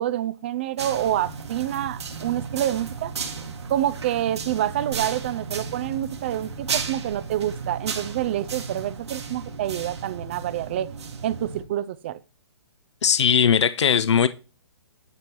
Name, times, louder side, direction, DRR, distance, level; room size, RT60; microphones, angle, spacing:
voice 1, 0.0-3.1 3.7-10.9 11.2-12.2, right 12 dB, 25° right, 0.4 m, -27 dB
sound 1, 0.8-11.6, right 5 dB, 75° right, 2.0 m, -34 dB
voice 2, 13.0-14.3, left 7 dB, 80° left, 0.6 m, -19 dB
10.5 x 4.5 x 5.3 m
hypercardioid pair, 165°, 14 cm